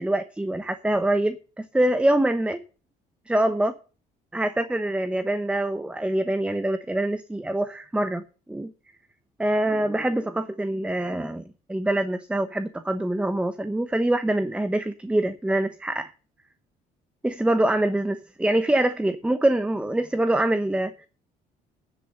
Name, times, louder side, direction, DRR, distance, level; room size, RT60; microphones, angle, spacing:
voice 1, 0.0-2.6 3.3-3.7 4.3-8.2 8.5-8.7 9.4-11.4 11.7-16.1 17.2-21.1, right 1 dB, 5° right, 0.9 m, -24 dB
10.5 x 7.8 x 6.6 m
cardioid pair, 110°, 17 cm